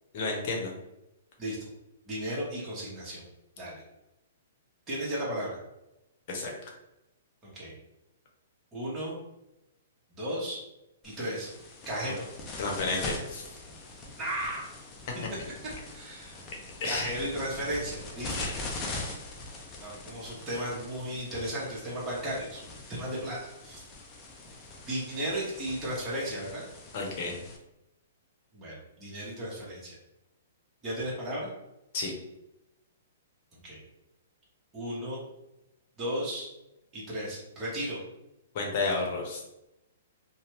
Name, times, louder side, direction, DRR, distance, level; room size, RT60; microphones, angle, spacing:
voice 1, 0.1-0.7 6.3-6.7 12.0-12.1 12.6-13.4 16.8-17.1 18.3-18.9 26.9-27.3 31.9-32.1 38.5-39.4, left 3 dB, 50° left, 0 dB, 0.9 m, -32 dB
voice 2, 2.1-3.2 3.6-3.8 4.9-5.6 7.4-7.7 8.7-9.2 10.1-10.6 11.0-11.5 11.9-12.2 14.1-14.6 15.9-16.5 16.8-18.3 19.8-22.6 22.9-23.8 24.8-26.6 28.5-30.0 30.8-31.5 33.5-33.8 34.7-35.2 36.0-36.5 36.9-38.0, right 1 dB, 20° right, -7 dB, 1.2 m, -34 dB
sound 1, 11.0-27.6, left 2 dB, 25° left, 0.6 m, -42 dB
2.7 x 2.3 x 3.2 m, 0.90 s
hypercardioid pair, 125°, 0 cm